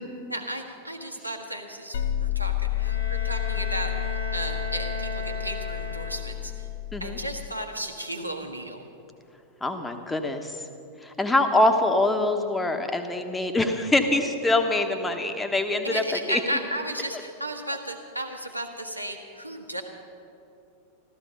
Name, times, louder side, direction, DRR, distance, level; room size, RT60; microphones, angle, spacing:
voice 1, 0.3-3.9 4.3-6.7 7.0-8.8 15.8-19.8, right 1 dB, 90° right, 3 dB, 1.4 m, -34 dB
sound 1, 1.9-7.5, left 13 dB, 55° left, 0.5 m, -30 dB
Bowed string instrument, 2.7-6.6, right 1 dB, 80° left, 2.8 m, -37 dB
voice 2, 9.6-10.6 11.0-16.0 16.3-16.4, left 2 dB, 10° left, 6 dB, 1.2 m, -24 dB
14.5 x 14.0 x 5.5 m, 2.7 s
figure-of-eight pair, 90°, 0 cm